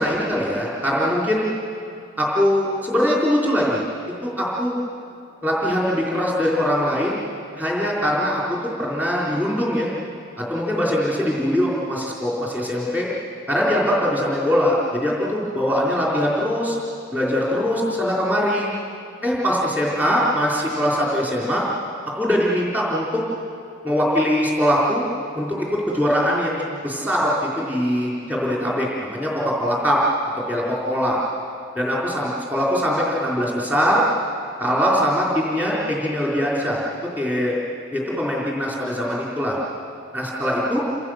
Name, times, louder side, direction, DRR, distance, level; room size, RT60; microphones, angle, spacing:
voice 1, 0.0-1.6 2.2-3.8 4.2-4.8 5.4-7.2 7.5-9.9 10.4-13.1 13.5-16.8 17.1-18.7 19.2-21.7 22.1-23.2 23.8-25.1 25.3-26.6 26.8-30.0 30.5-31.2 31.8-34.0 34.6-36.8 37.2-37.5 37.9-39.6 40.1-40.8, equal, 10° right, -5 dB, 4.2 m, -22 dB
29.0 x 26.0 x 6.6 m, 2.6 s
head